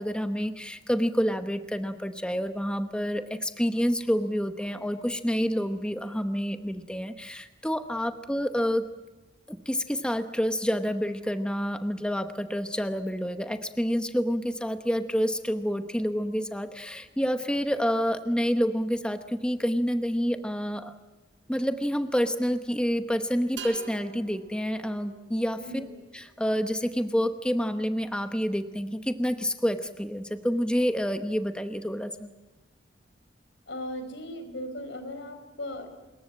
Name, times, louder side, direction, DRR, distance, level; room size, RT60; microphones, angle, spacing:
voice 1, 0.0-8.9 9.5-20.9 21.5-25.8 26.1-32.3, equal, 5° left, 8 dB, 0.9 m, -28 dB
sound 1, 23.6-27.2, right 7 dB, 85° right, 4.1 m, -47 dB
voice 2, 25.6-25.9 33.7-35.9, left 1 dB, 85° left, 8 dB, 4.9 m, -37 dB
26.0 x 22.0 x 7.6 m, 1.2 s
head